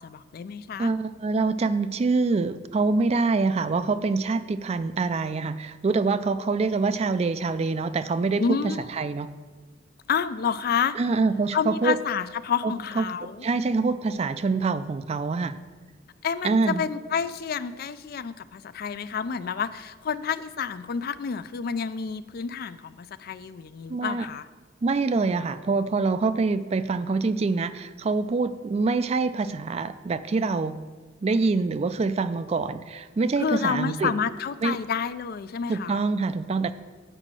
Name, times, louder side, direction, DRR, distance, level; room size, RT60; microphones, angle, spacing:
voice 1, 0.0-0.9 8.4-8.8 10.1-11.0 11.5-13.5 16.2-24.5 33.4-36.0, left 6 dB, 50° left, 14 dB, 0.3 m, -29 dB
voice 2, 0.8-9.3 11.0-12.0 12.6-13.0 13.4-15.6 16.4-16.8 23.9-24.3 24.8-30.8 31.2-34.1 34.6-34.8 35.7-36.7, right 4 dB, 35° right, 13 dB, 0.3 m, -25 dB
9.0 x 5.0 x 7.4 m, 1.4 s
head